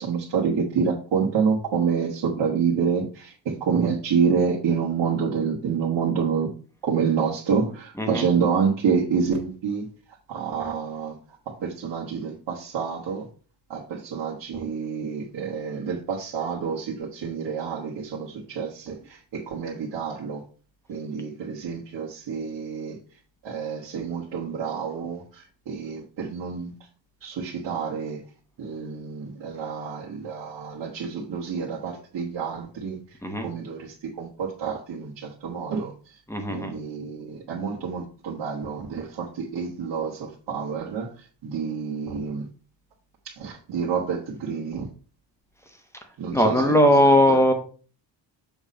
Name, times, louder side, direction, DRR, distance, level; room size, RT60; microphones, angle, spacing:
voice 1, 0.0-6.5 6.8-13.3 13.7-20.4 20.9-26.7 27.2-28.2 28.6-36.2 36.5-42.5 43.2-44.9 46.2-47.4, right 6 dB, 65° right, -4 dB, 1.4 m, -28 dB
voice 2, 36.3-36.7 46.3-47.5, equal, 5° left, 4 dB, 0.9 m, -19 dB
6.9 x 4.2 x 5.1 m, 0.39 s
wide cardioid pair, 175°, 45 cm